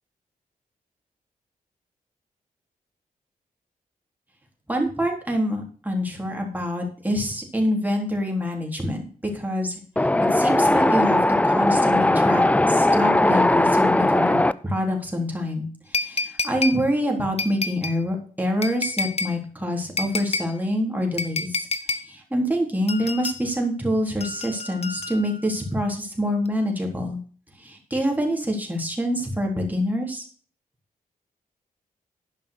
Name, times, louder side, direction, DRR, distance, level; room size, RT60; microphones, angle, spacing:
voice 1, 4.7-21.7 22.0-27.2 27.6-30.2, equal, 10° right, 1 dB, 3.6 m, -26 dB
Wind, 10.0-14.5, left 1 dB, 10° left, 0.5 m, -19 dB
sound 1, 15.9-16.8 17.4-18.0 18.6-19.3 20.0-20.5 21.2-22.0 22.9-23.4 24.2-25.4 26.5-26.6, left 4 dB, 45° left, 1.1 m, -29 dB
11.5 x 5.5 x 6.7 m, 0.44 s
cardioid pair, 90°, 15 cm